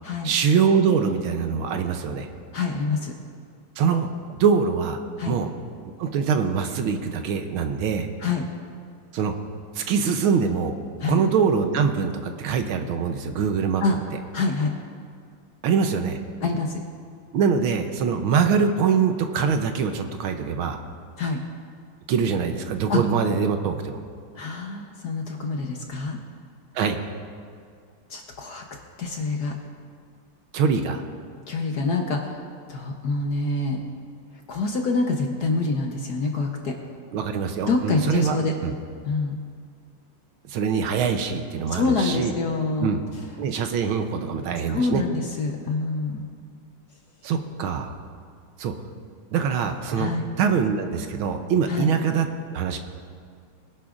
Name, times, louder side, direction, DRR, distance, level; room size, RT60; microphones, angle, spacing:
voice 1, 0.2-2.3 3.8-5.5 6.0-8.1 9.1-9.3 9.7-10.7 11.0-13.8 15.6-16.2 17.3-20.8 22.1-24.0 26.7-27.0 30.5-31.0 37.1-38.4 38.6-38.7 40.5-42.3 42.8-43.0 43.4-45.0 47.2-47.9 48.6-48.7 49.3-50.1 50.4-52.3 52.5-52.8, right 6 dB, 75° right, 6 dB, 1.5 m, -23 dB
voice 2, 2.5-3.1 5.2-5.4 8.2-8.5 11.0-11.2 13.8-13.9 14.3-14.7 16.4-16.8 21.2-21.4 22.9-23.0 24.3-26.2 28.1-28.6 29.0-29.5 31.5-32.4 32.7-33.8 34.5-36.8 37.7-38.5 39.1-39.4 41.7-42.9 44.7-46.3 50.0-50.2 51.7-51.9, left 3 dB, 60° left, 2 dB, 1.2 m, -26 dB
22.0 x 11.0 x 2.5 m, 2.2 s
omnidirectional pair, 2.4 m